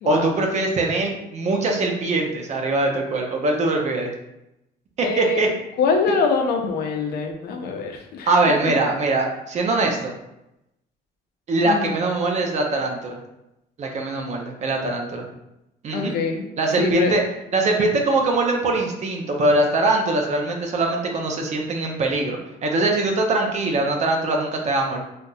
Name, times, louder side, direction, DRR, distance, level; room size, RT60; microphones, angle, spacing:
voice 1, 0.1-4.1 5.0-5.5 8.3-10.1 11.5-13.2 13.8-15.2 15.8-16.1 16.6-17.2 17.5-25.0, right 2 dB, 45° right, 2 dB, 0.6 m, -22 dB
voice 2, 5.0-5.4 5.8-8.3 11.6-11.9 15.9-16.5 16.8-17.1, left 4 dB, 70° left, 3 dB, 0.6 m, -24 dB
3.8 x 2.6 x 2.3 m, 0.87 s
cardioid pair, 110°, 17 cm